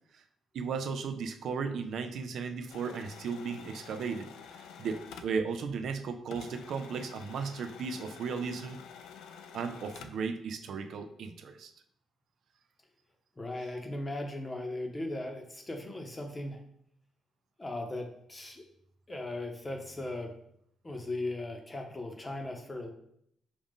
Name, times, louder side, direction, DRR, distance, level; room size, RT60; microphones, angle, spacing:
voice 1, 0.5-4.3 4.6-8.8 9.5-11.7, right 5 dB, 70° right, 7 dB, 0.4 m, -35 dB
sound 1, 2.7-6.0 6.3-10.3, left 7 dB, 85° left, 0.3 m, -49 dB
voice 2, 13.4-16.6 17.6-18.6 19.1-20.3 20.8-22.9, left 2 dB, 20° left, 3 dB, 0.8 m, -38 dB
5.1 x 2.4 x 3.6 m, 0.71 s
cardioid pair, 90°, 0 cm